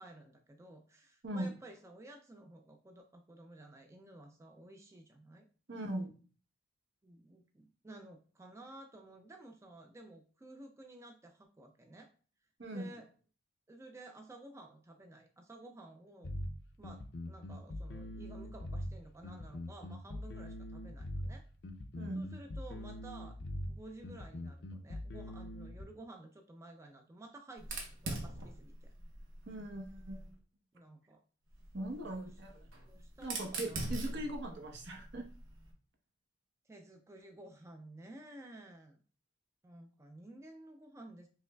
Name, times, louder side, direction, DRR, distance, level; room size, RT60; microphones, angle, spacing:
voice 1, 0.0-5.5 7.0-12.1 12.7-13.1 13.7-16.3 16.8-21.4 22.1-23.4 23.7-28.9 30.7-31.2 32.0-32.4 32.9-33.9 36.6-39.0 39.6-41.3, right 2 dB, 15° right, 3 dB, 0.4 m, -53 dB
voice 2, 5.7-6.1 12.6-12.9 22.0-22.2 29.5-30.3 31.7-32.7 33.2-35.3, right 1 dB, 65° right, 2 dB, 0.9 m, -40 dB
sound 1, 16.2-25.8, left 1 dB, 65° left, 0.5 m, -42 dB
Fire, 27.6-30.3 31.5-35.7, right 2 dB, 85° right, 0.9 m, -43 dB
5.5 x 3.1 x 2.2 m, 0.40 s
head